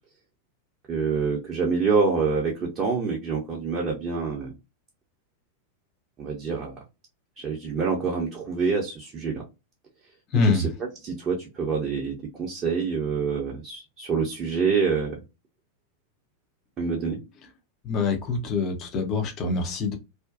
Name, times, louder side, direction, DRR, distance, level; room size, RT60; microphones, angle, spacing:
voice 1, 0.9-4.5 6.2-6.8 7.4-9.4 10.3-15.2 16.8-17.2, right 5 dB, 25° right, 0.7 m, -26 dB
voice 2, 10.3-10.7 17.9-20.0, left 4 dB, 35° left, 0.6 m, -25 dB
2.5 x 2.2 x 2.4 m
figure-of-eight pair, 90°, 0 cm